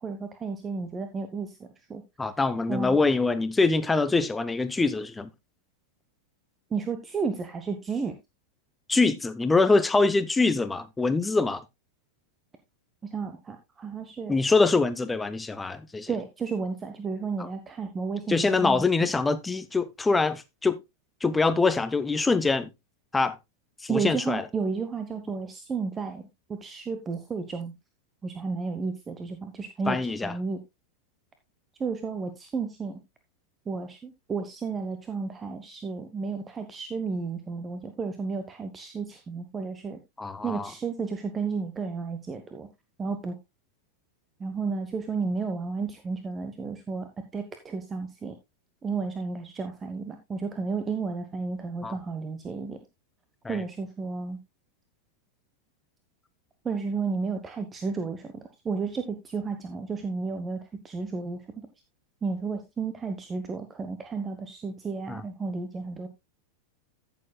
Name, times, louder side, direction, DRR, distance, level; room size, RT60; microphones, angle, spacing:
voice 1, 0.0-2.0 2.7-3.0 6.7-8.2 13.0-14.4 16.1-18.8 23.9-27.7 28.2-30.0 30.2-30.6 31.8-33.0 33.7-40.0 40.4-42.7 43.0-43.4 44.4-48.4 48.8-52.8 53.5-54.4 56.6-61.4 62.2-66.1, right 4 dB, 20° right, 1.1 m, -32 dB
voice 2, 2.2-5.3 8.9-11.6 14.3-16.1 18.3-20.8 21.2-22.7 23.1-23.4 23.8-24.4 29.9-30.3 40.2-40.7 51.8-52.0 53.4-53.6 65.1-65.2, left 3 dB, 10° left, 0.7 m, -24 dB
14.5 x 7.0 x 2.3 m
figure-of-eight pair, 90°, 0 cm